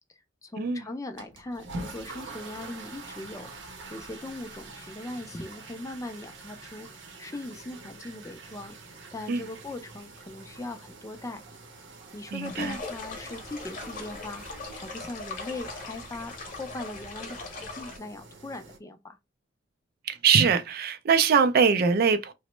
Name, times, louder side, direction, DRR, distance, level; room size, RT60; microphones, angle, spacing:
voice 1, 0.4-3.5 3.9-8.8 9.1-11.4 12.1-19.2, left 2 dB, 15° left, 0.4 m, -40 dB
sound 1, 1.1-18.8, right 2 dB, 80° right, 0.7 m, -45 dB
voice 2, 12.3-12.8 20.1-22.3, right 6 dB, 55° right, 0.4 m, -22 dB
sound 2, 12.4-18.0, left 3 dB, 45° left, 0.8 m, -40 dB
2.9 x 2.1 x 3.0 m
head